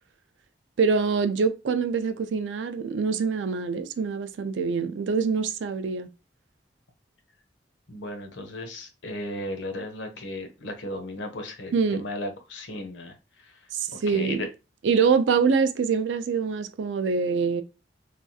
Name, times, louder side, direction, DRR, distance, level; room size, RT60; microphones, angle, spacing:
voice 1, 0.8-6.1 11.7-12.0 13.7-14.5 14.8-17.6, right 5 dB, 80° right, 0.4 m, -25 dB
voice 2, 7.9-13.1 14.1-14.5, left 1 dB, 85° left, 0.8 m, -35 dB
3.2 x 2.3 x 2.7 m
head